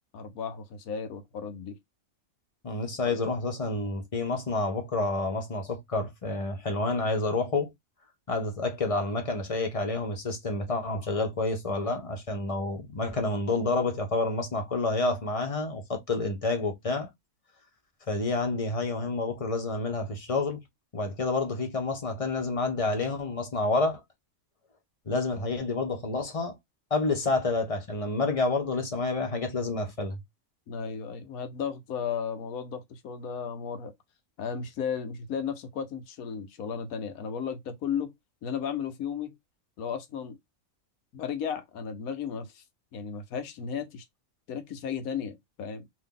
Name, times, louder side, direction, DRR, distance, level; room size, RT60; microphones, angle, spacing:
voice 1, 0.1-1.8 3.0-3.1 30.7-33.9 34.4-38.1 38.4-39.3 39.8-40.4 41.1-42.6 42.9-44.0 44.5-45.9, left 7 dB, 90° left, 1.2 m, -34 dB
voice 2, 2.6-7.7 8.3-17.1 18.1-20.6 20.9-24.0 25.1-26.6 26.9-30.2, left 3 dB, 30° left, 0.8 m, -29 dB
2.8 x 2.7 x 3.7 m
omnidirectional pair, 1.5 m